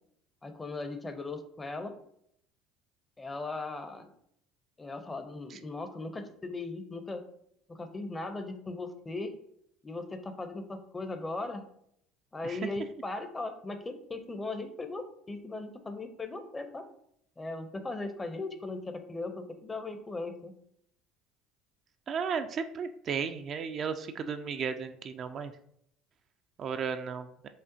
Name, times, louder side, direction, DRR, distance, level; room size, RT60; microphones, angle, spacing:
voice 1, 0.4-2.0 3.2-4.1 4.8-7.2 7.7-9.3 9.8-11.7 12.3-16.8 17.4-20.5, left 3 dB, 20° left, 7 dB, 0.6 m, -38 dB
voice 2, 22.1-25.5 26.6-27.3, right 6 dB, 50° right, 8 dB, 0.3 m, -34 dB
4.9 x 2.4 x 2.6 m, 0.71 s
supercardioid pair, 80°, 0 cm